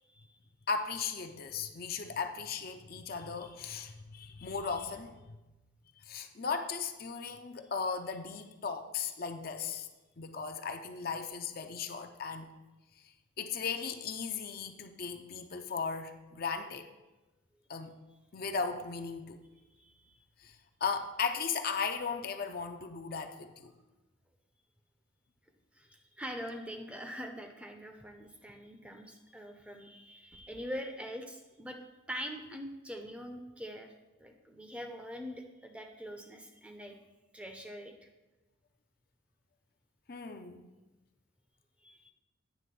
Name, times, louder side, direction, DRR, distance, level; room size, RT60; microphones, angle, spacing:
voice 1, 0.7-5.4 6.0-9.9 10.2-12.5 13.4-16.9 17.7-17.9 18.3-19.4 20.4-23.7 40.1-40.7, left 5 dB, 45° left, 6 dB, 0.5 m, -37 dB
voice 2, 19.8-20.2 25.7-31.8 32.1-33.9 34.2-37.0 37.3-37.9 41.8-42.1, equal, 5° right, 4 dB, 0.6 m, -43 dB
9.3 x 3.6 x 6.8 m, 1.1 s
head